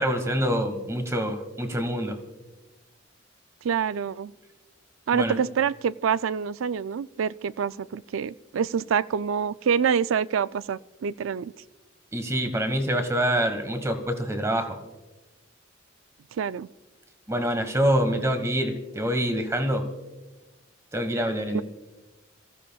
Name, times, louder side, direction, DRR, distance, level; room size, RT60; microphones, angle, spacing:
voice 1, 0.0-2.2 5.1-5.4 12.1-14.8 17.3-19.9 20.9-21.6, equal, 15° right, 1.4 m, -26 dB
voice 2, 3.6-4.3 5.1-11.5 16.4-16.7 21.5-21.6, right 7 dB, 85° right, 0.4 m, -26 dB
28.0 x 15.0 x 2.3 m
head